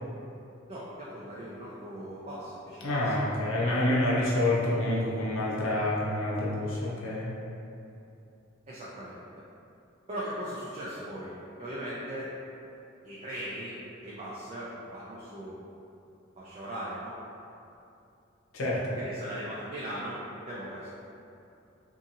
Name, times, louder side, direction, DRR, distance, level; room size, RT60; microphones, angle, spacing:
voice 1, 0.7-3.1 3.4-3.9 8.7-9.2 10.1-11.3 11.6-12.3 13.0-13.8 14.0-15.6 16.4-17.1 19.0-20.2 20.5-20.9, right 1 dB, 30° right, -8 dB, 0.3 m, -39 dB
voice 2, 2.8-7.3 18.5-18.8, left 1 dB, 75° left, -6 dB, 0.6 m, -27 dB
2.6 x 2.5 x 2.6 m, 2.7 s
head